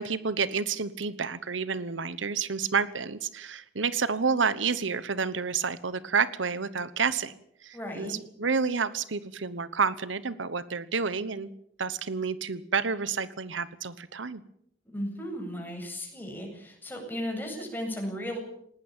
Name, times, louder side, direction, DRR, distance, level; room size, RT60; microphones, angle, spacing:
voice 1, 0.0-7.3 7.6-11.5 11.8-14.4 17.6-17.7, right 5 dB, 80° right, 16 dB, 1.1 m, -29 dB
voice 2, 7.7-8.2 14.8-18.4, equal, 10° left, 1 dB, 7.7 m, -35 dB
19.5 x 19.0 x 8.9 m, 0.73 s
head